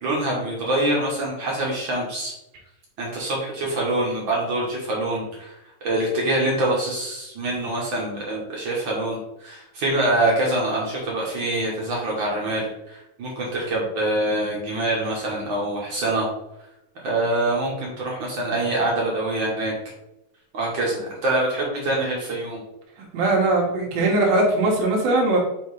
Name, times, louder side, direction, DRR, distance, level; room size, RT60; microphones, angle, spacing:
voice 1, 0.0-2.3 3.0-5.5 5.8-16.3 17.0-19.7 20.5-22.6, right 1 dB, 55° right, -3 dB, 1.4 m, -25 dB
voice 2, 23.1-25.4, right 2 dB, 90° right, -2 dB, 3.2 m, -20 dB
6.9 x 2.9 x 4.9 m, 0.90 s
omnidirectional pair, 4.0 m